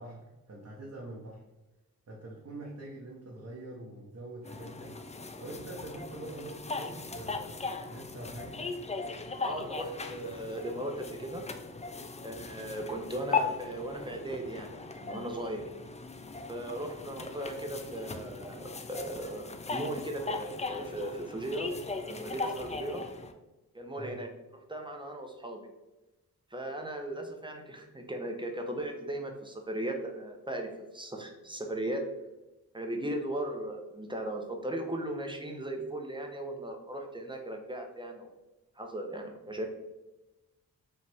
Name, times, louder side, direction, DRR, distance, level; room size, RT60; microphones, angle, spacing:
voice 1, 0.0-1.4 2.1-8.6 24.0-24.2, right 2 dB, 45° right, -4 dB, 1.0 m, -44 dB
sound 1, 4.4-23.3, left 4 dB, 20° left, 0.4 m, -38 dB
voice 2, 9.4-11.4 12.2-14.7 15.0-15.6 16.5-21.7 22.0-23.0 23.7-24.3 24.7-25.6 26.5-32.1 32.7-38.3 38.8-39.6, right 1 dB, 15° right, 3 dB, 0.9 m, -37 dB
5.0 x 2.5 x 3.4 m, 1.0 s
cardioid pair, 50°, 37 cm